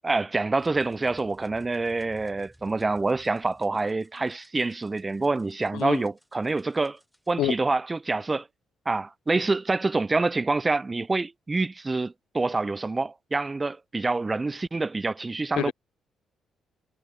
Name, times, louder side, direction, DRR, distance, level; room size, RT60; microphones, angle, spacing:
voice 1, 0.0-7.0 7.3-8.5 8.9-15.7, right 3 dB, 20° right, 0.7 m, -26 dB
sound 1, 0.6-7.3, equal, ahead, 2.2 m, -57 dB
voice 2, 5.7-6.1 7.4-7.5 15.6-15.7, left 15 dB, 90° left, 0.3 m, -27 dB
cardioid pair, 90°, 0 cm